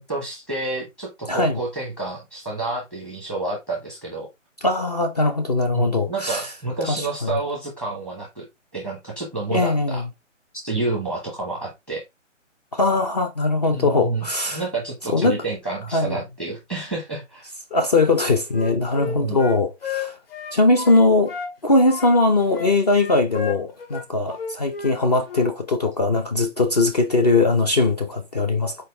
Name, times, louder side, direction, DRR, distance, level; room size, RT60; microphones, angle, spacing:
voice 1, 0.0-4.3 5.7-8.4 8.7-10.0 10.6-12.0 13.7-14.3 14.5-17.5 19.0-19.4, right 3 dB, ahead, 0.8 m, -29 dB
voice 2, 1.3-1.6 4.6-6.5 6.9-7.1 9.5-10.0 12.7-14.6 15.1-15.4 15.9-16.2 17.7-20.1 20.5-21.4 21.6-28.8, left 2 dB, 30° left, 0.6 m, -20 dB
Wind instrument woodwind instrument, 18.1-21.5 21.9-25.0 25.3-25.5, left 6 dB, 50° left, 2.3 m, -32 dB
6.7 x 4.4 x 3.3 m
hypercardioid pair, 160°, 38 cm